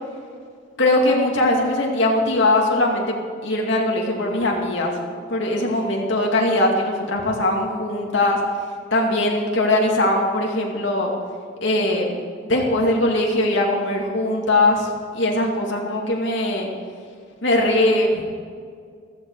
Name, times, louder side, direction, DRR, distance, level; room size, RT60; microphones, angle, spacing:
voice 1, 0.8-4.9 5.3-8.4 8.9-11.1 11.6-12.2 12.5-16.7 17.4-18.3, left 1 dB, 70° left, -1 dB, 2.4 m, -20 dB
15.0 x 15.0 x 4.8 m, 2.1 s
head